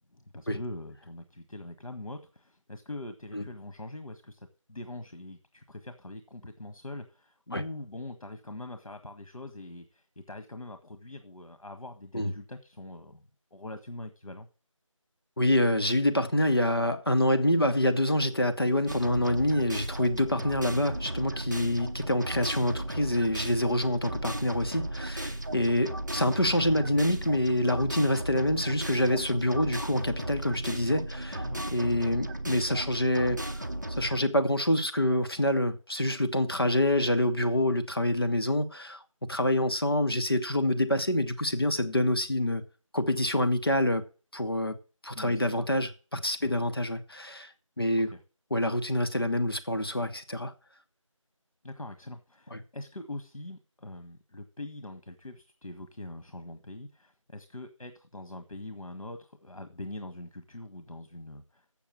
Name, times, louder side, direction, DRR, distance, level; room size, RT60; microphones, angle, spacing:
voice 1, 0.1-13.2 13.5-14.5 26.1-26.3 31.3-31.7 45.1-45.8 46.4-46.5 48.0-48.2 51.6-61.6, left 2 dB, 75° left, 1.4 m, -43 dB
voice 2, 15.4-33.7 34.0-39.0 39.3-42.6 42.9-44.0 44.3-44.8 45.0-48.1 48.5-50.5 52.5-52.6, left 1 dB, 45° left, 0.9 m, -26 dB
sound 1, 18.9-34.2, right 1 dB, 35° right, 0.8 m, -35 dB
7.7 x 7.0 x 7.4 m
figure-of-eight pair, 175°, 17 cm